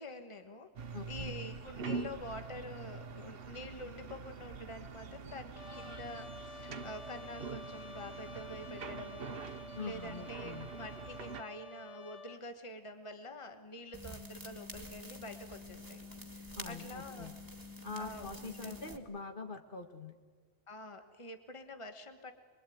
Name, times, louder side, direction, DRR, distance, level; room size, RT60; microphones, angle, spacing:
voice 1, 0.0-17.3 18.0-18.3 18.6-18.8 20.7-22.3, left 1 dB, 30° left, 6 dB, 1.6 m, -47 dB
sound 1, 0.8-11.4, right 5 dB, 60° right, 1.1 m, -44 dB
voice 2, 0.9-1.3 9.8-10.7 16.6-17.4 17.8-20.2, left 4 dB, 50° left, 5 dB, 1.9 m, -44 dB
Trumpet, 5.6-12.4, left 2 dB, 80° left, 1.3 m, -50 dB
sound 2, 13.9-19.0, left 1 dB, 20° right, 2.0 m, -48 dB
25.5 x 22.5 x 9.3 m, 1.5 s
omnidirectional pair, 1.1 m